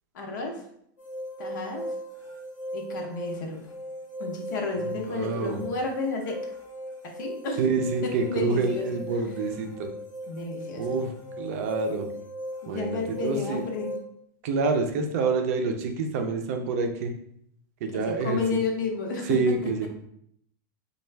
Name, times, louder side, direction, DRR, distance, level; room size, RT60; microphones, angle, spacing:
voice 1, 0.1-0.6 1.4-1.9 2.7-3.7 4.2-6.4 7.0-7.6 8.0-9.0 10.3-10.9 12.6-13.9 17.9-19.7, left 4 dB, 65° left, 2 dB, 0.9 m, -32 dB
sound 1, 1.0-14.0, equal, 15° left, 0.8 m, -38 dB
voice 2, 4.9-5.6 7.6-9.9 10.8-12.1 12.7-13.6 14.4-17.1 17.8-18.6 19.3-19.9, right 4 dB, 45° right, 5 dB, 0.5 m, -27 dB
4.3 x 2.3 x 3.3 m, 0.70 s
supercardioid pair, 175°, 11 cm